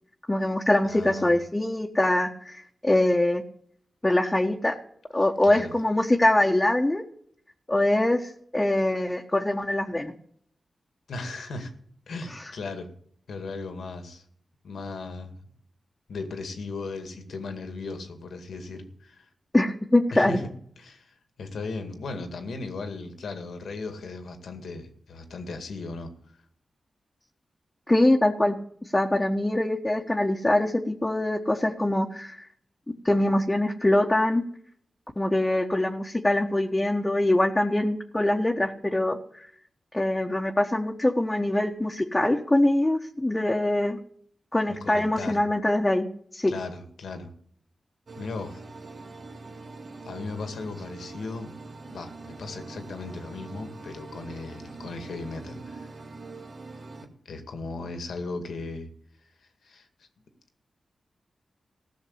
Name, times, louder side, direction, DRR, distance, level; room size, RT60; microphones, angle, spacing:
voice 1, 0.3-3.4 4.0-4.8 5.1-7.0 7.7-10.1 19.5-20.4 27.9-28.6 28.9-32.5 33.0-34.4 35.2-39.5 39.9-44.0 44.5-46.1 46.3-46.5, left 1 dB, 20° left, 0 dB, 1.4 m, -23 dB
voice 2, 0.8-1.3 5.2-5.7 11.1-11.7 12.1-12.9 13.3-14.2 14.6-15.4 16.1-19.3 20.1-20.4 20.8-26.1 44.7-45.4 46.5-47.3 48.2-48.6 50.0-51.5 51.9-55.9 57.3-58.9 59.4-60.1, left 3 dB, 85° left, 6 dB, 2.1 m, -37 dB
sound 1, 48.1-57.1, right 3 dB, 65° right, 1.9 m, -43 dB
15.5 x 6.5 x 8.0 m, 0.63 s
cardioid pair, 60°, 0 cm